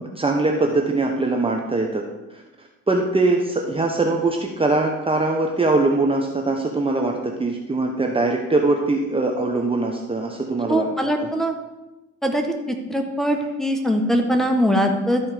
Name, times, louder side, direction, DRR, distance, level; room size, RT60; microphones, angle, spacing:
voice 1, 0.0-2.1 2.3-10.9 11.2-11.3, right 2 dB, 20° right, 1 dB, 1.0 m, -22 dB
voice 2, 10.7-11.5 12.2-15.2, equal, ahead, 2 dB, 1.3 m, -21 dB
13.0 x 4.3 x 5.0 m, 1.0 s
cardioid pair, 90°, 30 cm